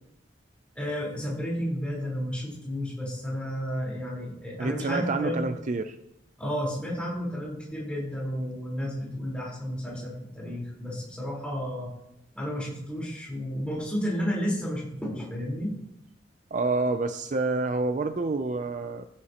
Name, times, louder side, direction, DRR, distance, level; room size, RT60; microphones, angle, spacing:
voice 1, 0.8-5.5 6.4-11.9 12.3-15.7, equal, 5° left, -5 dB, 4.1 m, -32 dB
voice 2, 4.6-6.0 16.5-19.1, right 3 dB, 40° right, 9 dB, 0.4 m, -28 dB
15.0 x 10.0 x 2.9 m, 0.82 s
head